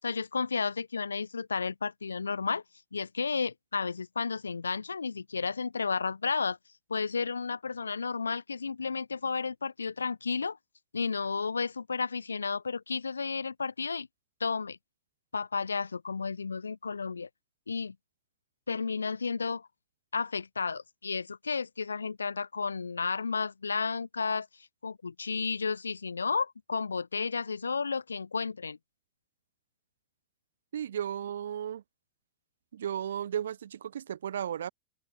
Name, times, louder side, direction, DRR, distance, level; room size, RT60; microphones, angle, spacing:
voice 1, 0.0-2.6 2.9-6.6 6.9-10.6 10.9-14.1 14.4-14.8 15.3-17.3 17.7-18.0 18.7-19.7 20.1-24.5 24.8-28.8, left 5 dB, 75° left, 5.5 m, -32 dB
voice 2, 30.7-31.8 32.7-34.7, right 9 dB, 65° right, 7.8 m, -34 dB
figure-of-eight pair, 90°, 0 cm